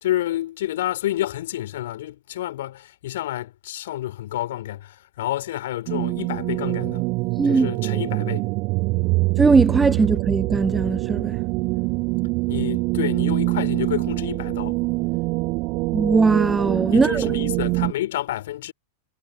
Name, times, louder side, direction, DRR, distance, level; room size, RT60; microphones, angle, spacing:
voice 1, 0.0-7.0 7.5-8.5 9.0-9.1 12.5-14.8 16.9-18.7, left 14 dB, 55° left, 3.3 m, -29 dB
sound 1, 5.9-17.9, right 25 dB, 40° right, 6.9 m, -24 dB
voice 2, 7.4-7.7 9.4-11.4 15.9-17.3, right 4 dB, 10° right, 0.5 m, -19 dB
figure-of-eight pair, 90°, 0 cm